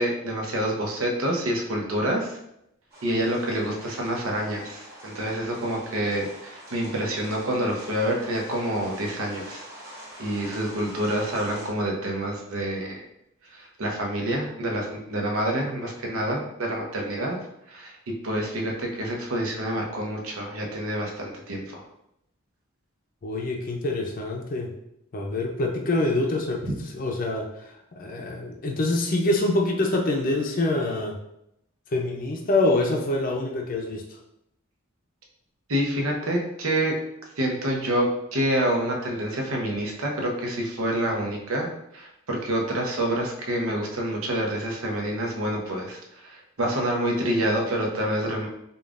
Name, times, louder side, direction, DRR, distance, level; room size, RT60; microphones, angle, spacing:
voice 1, 0.0-2.4 3.0-9.6 10.2-13.0 13.5-17.4 17.7-21.8 35.7-36.9 37.4-48.5, right 1 dB, 90° right, 0 dB, 0.8 m, -27 dB
sound 1, 2.9-11.7, right 1 dB, 50° right, 1.2 m, -44 dB
voice 2, 23.2-24.7 25.1-31.2 31.9-34.2, left 2 dB, 40° left, 0 dB, 0.5 m, -26 dB
5.2 x 2.4 x 2.4 m, 0.80 s
head